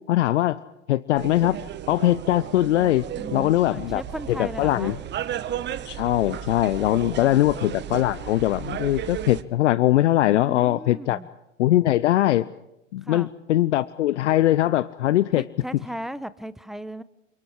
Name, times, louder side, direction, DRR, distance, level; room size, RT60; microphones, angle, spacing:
voice 1, 0.1-0.6 0.9-1.6 1.9-3.1 3.3-4.0 4.3-4.9 5.8-11.2 11.6-12.5 12.9-15.4, left 14 dB, 65° left, 18 dB, 0.9 m, -21 dB
sound 1, 1.2-9.4, right 10 dB, 25° right, 1.4 m, -34 dB
voice 2, 3.2-5.0 6.9-7.5 10.2-11.3 13.0-13.3 15.3-17.0, equal, ahead, 16 dB, 1.0 m, -37 dB
29.0 x 27.5 x 4.8 m, 0.88 s
hypercardioid pair, 100°, 39 cm